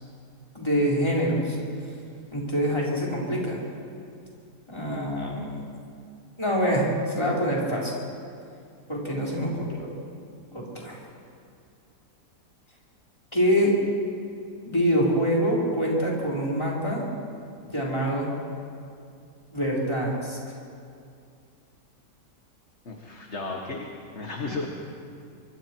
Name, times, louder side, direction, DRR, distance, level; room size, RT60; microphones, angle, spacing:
voice 1, 0.5-1.6 2.3-3.7 4.7-5.7 6.4-7.9 8.9-9.9 10.5-11.0 13.3-13.7 14.6-17.0 17.6-18.3 19.5-20.4 24.5-24.6, equal, 15° left, -4 dB, 4.3 m, -25 dB
voice 2, 22.9-24.7, left 3 dB, 45° left, 1 dB, 1.8 m, -34 dB
25.0 x 24.5 x 4.6 m, 2.4 s
omnidirectional pair, 1.8 m